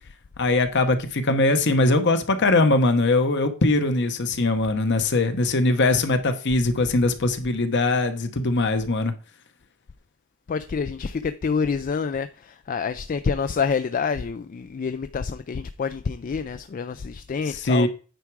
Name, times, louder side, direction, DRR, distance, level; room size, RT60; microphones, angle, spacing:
voice 1, 0.4-9.1 17.6-17.9, left 2 dB, 55° left, 1.0 m, -21 dB
voice 2, 10.5-17.9, left 5 dB, 40° left, 0.3 m, -27 dB
9.2 x 4.8 x 4.7 m
head